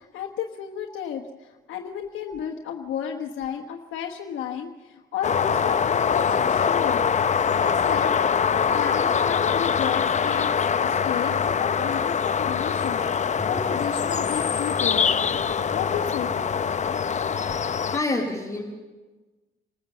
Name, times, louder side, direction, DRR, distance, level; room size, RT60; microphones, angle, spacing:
voice 1, 0.0-7.0 7.6-8.2 8.7-10.5 10.8-15.1 15.7-16.3, left 8 dB, 85° left, 2 dB, 1.3 m, -32 dB
sound 1, 5.2-18.0, left 7 dB, 35° left, 0.7 m, -23 dB
voice 2, 13.4-13.8 16.3-16.8 17.9-18.6, left 2 dB, 15° left, -6 dB, 4.5 m, -30 dB
26.5 x 14.0 x 7.2 m, 1.3 s
cardioid pair, 90°, 20 cm